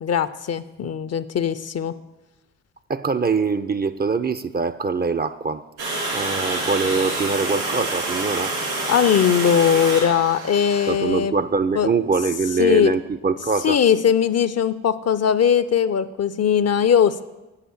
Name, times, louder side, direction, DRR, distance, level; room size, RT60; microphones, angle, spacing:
voice 1, 0.0-1.9 8.9-11.3 11.7-11.9 12.6-13.0 13.6-17.2, left 8 dB, 40° left, 13 dB, 0.6 m, -19 dB
voice 2, 2.9-5.6 6.1-8.5 10.9-13.8, right 4 dB, 25° right, 12 dB, 0.5 m, -23 dB
Water, 5.8-10.9, right 2 dB, 80° right, 3.6 m, -27 dB
8.0 x 5.8 x 7.9 m, 1.0 s
hypercardioid pair, 45°, 39 cm